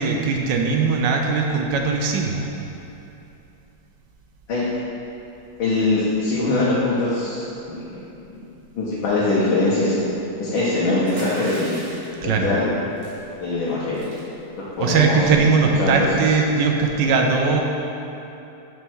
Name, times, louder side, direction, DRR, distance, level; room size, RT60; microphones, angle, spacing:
voice 1, 0.0-2.7 12.2-12.6 14.8-17.6, right 4 dB, 70° right, 2 dB, 1.1 m, -20 dB
voice 2, 5.6-8.0 8.8-10.0 10.4-11.8 12.2-12.7 13.4-14.1 14.6-15.2 15.8-16.2, left 2 dB, 75° left, -9 dB, 1.9 m, -22 dB
sound 1, 11.0-12.2 13.0-13.3 13.6-13.7 13.9-14.2 14.8-15.1, right 1 dB, 50° right, 2.4 m, -37 dB
6.4 x 4.6 x 6.2 m, 2.9 s
omnidirectional pair, 2.3 m